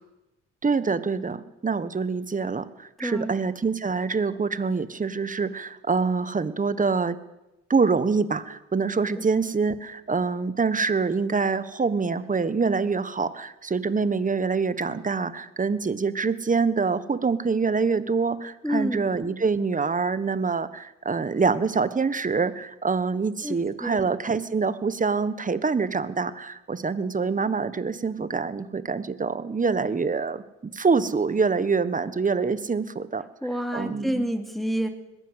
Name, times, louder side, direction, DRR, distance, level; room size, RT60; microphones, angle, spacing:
voice 1, 0.6-7.2 7.7-33.2 33.7-34.3, right 4 dB, 25° right, 13 dB, 1.4 m, -25 dB
voice 2, 3.0-3.3 9.2-9.3 18.6-19.1 23.4-24.0 33.4-34.9, equal, ahead, 4 dB, 2.9 m, -28 dB
21.0 x 15.5 x 8.2 m, 0.97 s
cardioid pair, 90°, 30 cm